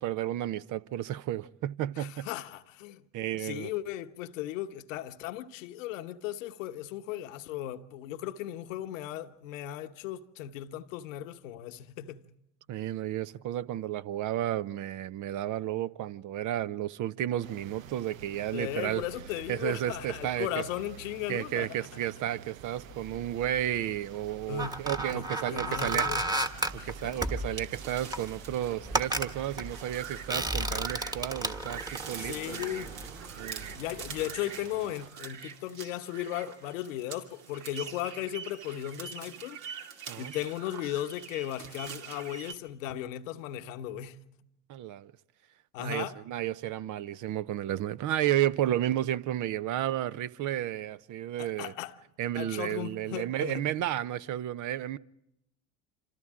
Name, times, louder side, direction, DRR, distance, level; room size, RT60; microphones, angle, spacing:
voice 1, 0.0-2.3 3.1-3.7 12.7-19.0 19.5-20.6 21.3-26.1 26.9-32.7 33.4-33.8 40.1-40.3 44.7-45.1 45.8-51.7 52.2-55.0, right 12 dB, 50° right, 0.8 m, -32 dB
voice 2, 2.0-3.0 3.3-12.2 18.5-21.8 24.5-24.9 25.1-26.3 26.7-27.2 32.2-33.0 33.7-39.6 40.2-44.2 45.7-46.2 51.4-51.9 52.3-53.7, left 12 dB, 75° left, 1.1 m, -36 dB
sound 1, 17.4-35.1, right 8 dB, 90° right, 0.8 m, -49 dB
sound 2, 23.1-23.7 24.3-33.8 34.0-34.2, right 2 dB, 10° right, 1.5 m, -34 dB
sound 3, 26.4-42.5, right 7 dB, 65° right, 2.5 m, -45 dB
27.5 x 26.5 x 3.7 m
hypercardioid pair, 70°, 39 cm